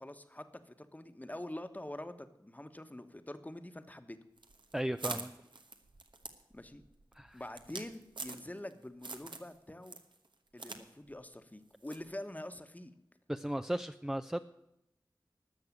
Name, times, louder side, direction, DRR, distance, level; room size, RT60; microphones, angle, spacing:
voice 1, 0.0-4.2 6.5-6.8 7.3-10.0 10.5-12.9, left 1 dB, 20° left, 9 dB, 1.2 m, -45 dB
sound 1, 4.4-8.7 9.0-9.5 9.8-10.8 11.1-11.2 11.9-12.1, right 3 dB, 85° right, 1.2 m, -44 dB
voice 2, 4.7-5.3 7.1-7.4 13.3-14.4, right 1 dB, 5° right, 8 dB, 0.5 m, -35 dB
13.0 x 6.5 x 9.6 m, 0.86 s
wide cardioid pair, 55°, 8 cm